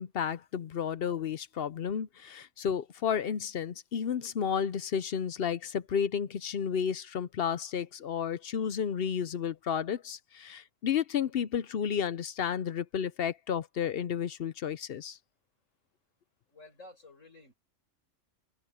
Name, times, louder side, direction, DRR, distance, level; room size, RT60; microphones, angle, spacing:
voice 1, 0.0-15.2, left 7 dB, 55° left, 0.8 m, -32 dB
voice 2, 16.5-17.5, left 2 dB, 75° left, 7.3 m, -52 dB
omnidirectional pair, 1.3 m